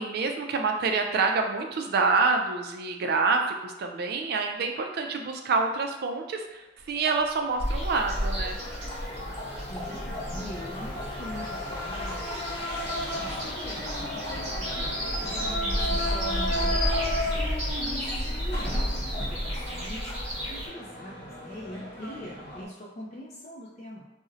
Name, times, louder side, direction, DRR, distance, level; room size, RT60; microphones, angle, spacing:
voice 1, 0.0-8.6 17.7-17.8, right 4 dB, 60° right, 4 dB, 0.4 m, -27 dB
sound 1, 6.8-20.4, left 1 dB, 15° left, 1.2 m, -45 dB
sound 2, 7.3-22.6, left 1 dB, 65° left, 0.8 m, -35 dB
sound 3, 7.6-20.7, equal, 40° right, 1.0 m, -32 dB
voice 2, 9.7-20.1 20.5-24.1, left 1 dB, 35° left, -5 dB, 0.4 m, -43 dB
2.6 x 2.0 x 3.7 m, 1.0 s
head